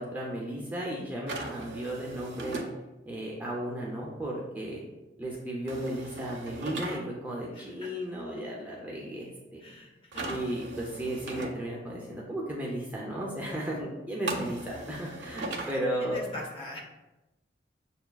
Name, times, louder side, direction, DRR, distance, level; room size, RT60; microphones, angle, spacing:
voice 1, 0.0-2.6 3.1-4.8 5.2-9.6 10.3-16.2, right 1 dB, 10° right, -4 dB, 0.5 m, -35 dB
sound 1, 1.3-2.7 5.7-7.0 10.1-11.5 14.3-15.8, right 2 dB, 75° right, 0.5 m, -38 dB
voice 2, 7.5-7.9 9.6-10.3 15.7-16.8, left 1 dB, 30° left, -1 dB, 0.7 m, -42 dB
6.8 x 2.3 x 2.2 m, 1.0 s
head